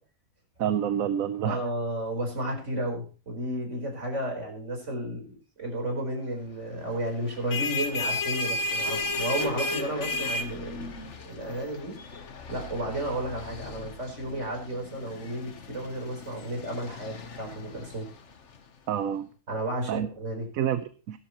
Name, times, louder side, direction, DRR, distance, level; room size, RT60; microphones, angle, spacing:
voice 1, 0.6-1.6 18.9-19.3 19.9-20.1 20.5-21.2, right 9 dB, 70° right, 11 dB, 1.2 m, -28 dB
voice 2, 1.4-12.0 12.5-18.1 19.5-20.5, right 1 dB, 50° right, 2 dB, 4.7 m, -33 dB
sound 1, 7.2-18.6, left 2 dB, 50° left, 1.4 m, -34 dB
17.0 x 12.0 x 3.1 m, 0.35 s
omnidirectional pair, 1.6 m